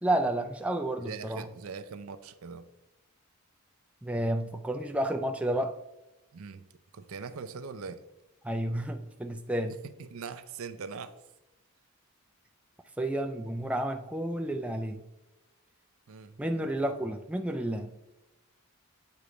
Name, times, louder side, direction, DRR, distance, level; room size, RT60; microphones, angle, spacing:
voice 1, 0.0-1.5 4.0-5.8 8.4-9.8 13.0-15.0 16.4-17.9, right 1 dB, 5° right, 0.3 m, -31 dB
voice 2, 1.0-2.7 6.3-6.7 6.9-8.1 9.7-11.2 16.1-16.4, right 5 dB, 65° right, 0.5 m, -41 dB
8.2 x 3.1 x 4.9 m
head